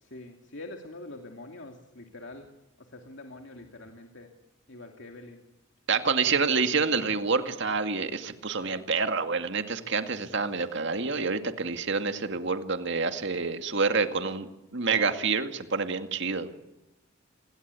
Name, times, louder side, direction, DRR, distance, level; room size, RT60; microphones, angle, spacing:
voice 1, 0.0-2.5 2.8-4.3 4.7-5.4, left 2 dB, 60° left, 3 dB, 2.7 m, -44 dB
voice 2, 5.9-16.5, right 4 dB, 60° right, 7 dB, 2.2 m, -28 dB
29.0 x 22.0 x 8.4 m, 1.0 s
head